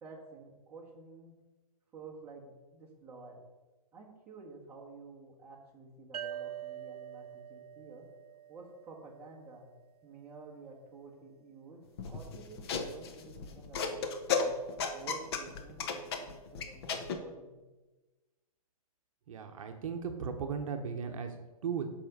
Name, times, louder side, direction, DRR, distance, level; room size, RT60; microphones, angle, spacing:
voice 1, 0.0-1.3 1.9-3.4 3.9-8.1 8.5-9.7 10.0-14.5 14.9-17.5, right 4 dB, 10° right, -4 dB, 1.4 m, -51 dB
sound 1, 6.1-9.6, right 11 dB, 80° right, 0.6 m, -45 dB
sound 2, 12.0-17.2, left 5 dB, 40° left, 0.9 m, -34 dB
voice 2, 19.3-21.9, right 6 dB, 60° right, 5 dB, 0.9 m, -37 dB
7.5 x 5.1 x 5.4 m, 1.2 s
hypercardioid pair, 160°, 20 cm